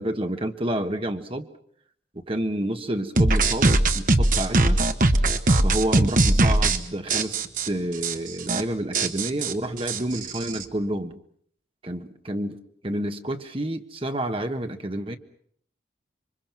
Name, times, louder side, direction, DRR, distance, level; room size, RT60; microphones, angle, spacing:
voice 1, 0.0-1.5 2.2-4.8 5.6-11.2 11.8-12.6 12.8-15.2, right 1 dB, 30° right, 7 dB, 1.4 m, -29 dB
sound 1, 3.2-6.8 7.1-7.7 8.0-8.1 8.4-8.6 8.9-10.6, right 2 dB, 45° right, 1.3 m, -20 dB
27.0 x 23.5 x 6.1 m, 0.63 s
head